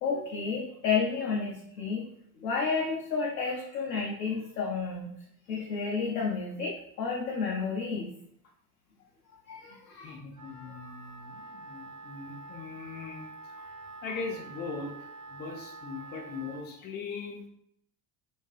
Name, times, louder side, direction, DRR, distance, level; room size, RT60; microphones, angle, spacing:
voice 1, 0.0-2.0 2.4-5.2 5.5-8.1 9.5-10.2, left 5 dB, 70° left, -3 dB, 0.7 m, -31 dB
voice 2, 10.0-13.3 14.0-14.9 15.3-17.5, left 4 dB, 20° left, 1 dB, 0.4 m, -40 dB
Wind instrument woodwind instrument, 10.3-16.7, right 3 dB, 40° right, 0.7 m, -46 dB
2.4 x 2.3 x 2.3 m, 0.69 s
figure-of-eight pair, 65°, 49 cm